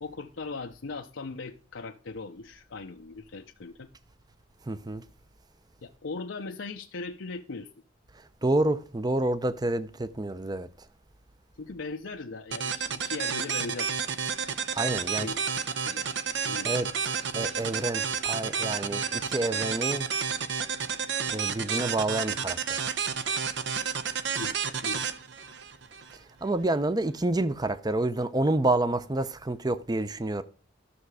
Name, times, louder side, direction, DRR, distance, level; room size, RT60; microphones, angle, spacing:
voice 1, 0.0-3.9 5.8-7.7 11.6-14.0 15.2-15.4 15.9-16.1 16.5-16.8 24.4-24.6 24.8-25.0, left 3 dB, 80° left, 0.7 m, -39 dB
voice 2, 4.6-5.0 8.1-10.7 14.7-15.3 16.6-20.1 21.3-22.8 26.4-30.4, right 2 dB, 20° right, 0.6 m, -28 dB
sound 1, 12.5-26.2, right 6 dB, 65° right, 0.8 m, -31 dB
13.0 x 6.7 x 4.8 m
head